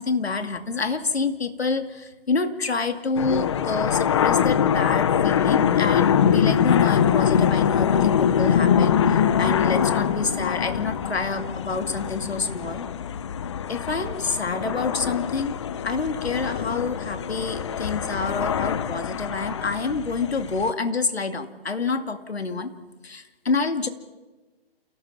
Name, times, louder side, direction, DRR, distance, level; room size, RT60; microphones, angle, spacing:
voice 1, 0.0-12.9 13.7-15.6 15.8-22.7 23.0-23.9, left 4 dB, 85° left, 8 dB, 2.4 m, -27 dB
sound 1, 3.2-20.7, left 8 dB, 30° left, 0.8 m, -23 dB
29.0 x 18.0 x 5.8 m, 1.2 s
hypercardioid pair, 155°, 31 cm